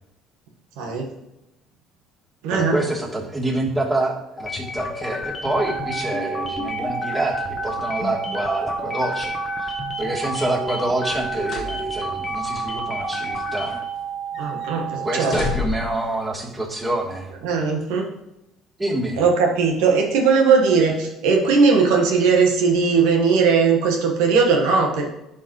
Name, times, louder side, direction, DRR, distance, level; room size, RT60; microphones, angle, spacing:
voice 1, 0.8-1.1 2.4-2.8 14.4-15.3 17.4-18.0 19.2-25.1, right 5 dB, 80° right, 2 dB, 1.5 m, -18 dB
voice 2, 2.5-13.7 15.0-17.3 18.8-19.2, right 2 dB, 20° right, -4 dB, 3.2 m, -27 dB
sound 1, 4.4-13.9, left 3 dB, 30° left, 1.0 m, -31 dB
sound 2, 5.5-15.6, right 9 dB, 50° right, 0.7 m, -31 dB
sound 3, 11.1-11.8 12.2-12.3 13.0-14.1 14.3-14.7 15.1-16.1 16.9-17.1, left 5 dB, 60° left, 1.5 m, -31 dB
11.5 x 5.1 x 3.2 m, 0.91 s
supercardioid pair, 70°, 0 cm